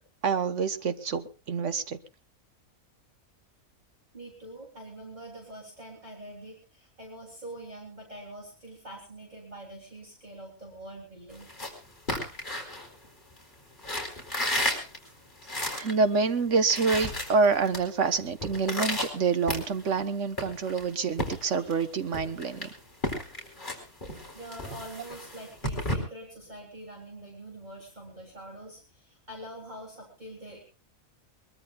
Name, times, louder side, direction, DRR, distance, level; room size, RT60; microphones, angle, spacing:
voice 1, 0.2-2.0 15.7-22.7, right 5 dB, 55° right, 10 dB, 1.5 m, -27 dB
voice 2, 4.1-11.5 15.0-15.1 15.7-16.0 21.2-21.8 24.3-30.6, right 1 dB, 30° right, -2 dB, 3.9 m, -45 dB
sound 1, 11.3-13.4 13.8-16.0 16.3-16.4 16.6-17.8 18.1-20.0 20.4-21.8 22.1-26.0, left 1 dB, 35° left, 4.5 m, -33 dB
22.5 x 22.0 x 2.4 m, 0.32 s
omnidirectional pair, 1.5 m